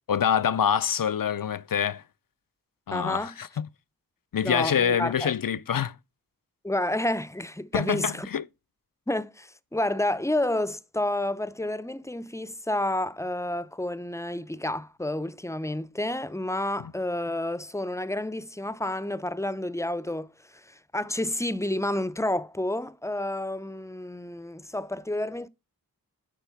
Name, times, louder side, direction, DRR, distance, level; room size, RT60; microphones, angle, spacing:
voice 1, 0.1-2.0 2.9-3.7 4.3-5.9 7.7-8.4, left 8 dB, 60° left, 0.5 m, -26 dB
voice 2, 2.9-3.4 4.4-5.3 6.6-8.3 9.1-25.5, left 1 dB, 10° left, 0.4 m, -30 dB
10.5 x 4.2 x 5.6 m
wide cardioid pair, 55°, 37 cm